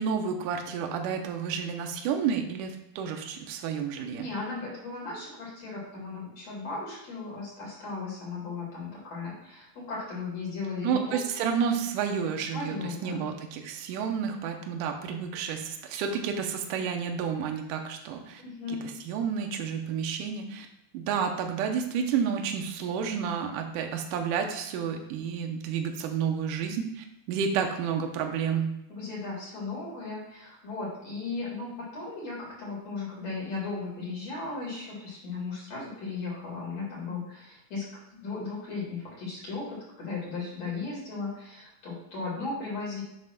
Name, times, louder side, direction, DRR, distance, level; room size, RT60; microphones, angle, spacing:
voice 1, 0.0-4.3 10.8-18.4 19.1-20.7 20.9-28.8, right 7 dB, 75° right, 4 dB, 2.2 m, -30 dB
voice 2, 4.1-11.2 12.5-13.2 18.4-18.9 28.9-37.9 38.2-43.0, left 4 dB, 50° left, -5 dB, 3.0 m, -36 dB
7.4 x 3.2 x 5.9 m, 0.84 s
omnidirectional pair, 4.1 m